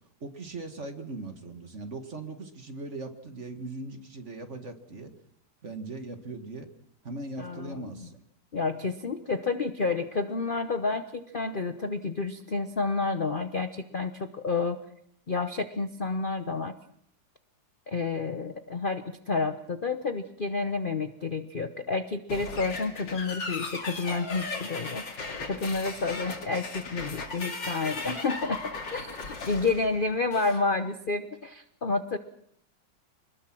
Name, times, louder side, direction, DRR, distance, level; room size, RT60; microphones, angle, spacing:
voice 1, 0.2-5.1 5.6-6.7 7.0-8.2 29.4-29.5, right 2 dB, 40° right, 7 dB, 2.1 m, -39 dB
voice 2, 7.4-8.1 8.5-14.8 15.3-16.7 17.9-25.0 25.4-28.6 28.9-32.2, left 3 dB, 40° left, 9 dB, 0.8 m, -30 dB
sound 1, 22.3-30.6, left 3 dB, 70° left, 3.3 m, -37 dB
26.5 x 20.5 x 6.2 m, 0.68 s
omnidirectional pair, 2.1 m